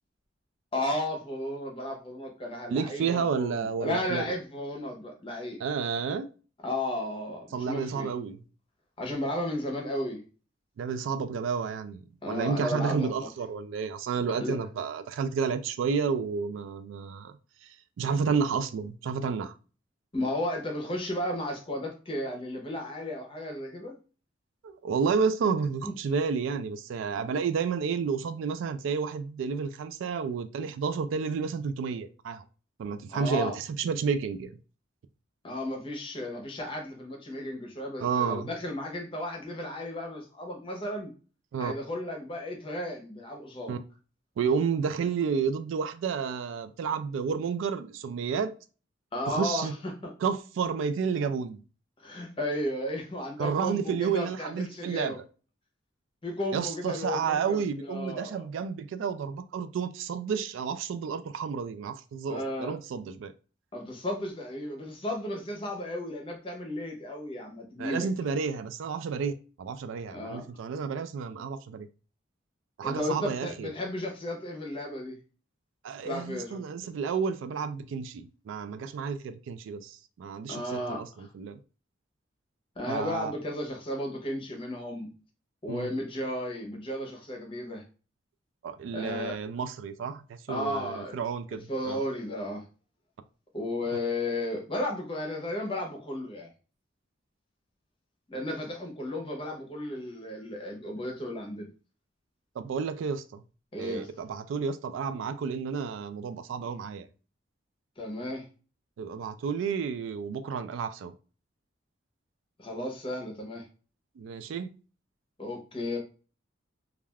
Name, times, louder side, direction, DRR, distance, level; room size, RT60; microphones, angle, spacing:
voice 1, 0.7-5.6 6.6-8.1 9.0-10.2 12.2-13.3 14.4-14.6 20.1-24.0 25.8-25.9 33.1-33.5 35.4-41.1 41.6-43.8 49.1-50.1 52.0-55.2 56.2-58.4 62.3-62.7 63.7-68.1 70.1-70.4 72.8-75.2 76.0-76.6 80.5-81.3 82.8-85.1 85.6-87.8 88.9-89.4 90.5-91.2 91.7-92.6 93.5-96.5 98.3-101.7 103.7-104.1 108.0-108.4 112.6-113.6 115.4-116.0, left 1 dB, 25° left, 0.7 m, -34 dB
voice 2, 2.7-4.3 5.6-6.3 7.5-8.4 10.8-17.3 18.0-19.5 24.6-32.4 32.8-34.5 38.0-38.5 41.5-41.7 43.7-43.8 44.4-48.5 49.3-49.7 50.2-51.6 53.4-55.1 56.5-63.3 67.8-69.3 69.6-71.9 72.8-73.7 75.8-81.6 82.9-83.3 85.7-85.9 88.6-92.0 102.6-103.4 103.8-107.1 109.0-111.1 114.2-114.7, right 6 dB, 80° right, 0.3 m, -31 dB
3.2 x 2.3 x 2.2 m
head